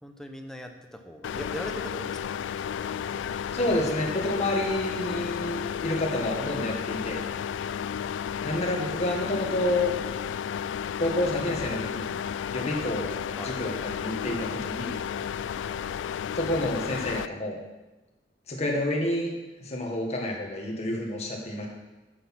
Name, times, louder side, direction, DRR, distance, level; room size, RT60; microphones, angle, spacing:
voice 1, 0.0-2.4 2.8-3.4 13.4-13.5 15.6-15.8, equal, 5° left, 4 dB, 0.9 m, -41 dB
sound 1, 1.2-17.3, left 8 dB, 85° left, 0.3 m, -32 dB
voice 2, 3.5-7.2 8.4-9.9 11.0-12.2 12.5-14.9 16.3-17.5 18.5-19.3 19.6-21.7, left 1 dB, 35° left, -1 dB, 1.7 m, -29 dB
10.0 x 6.4 x 5.9 m, 1.1 s
head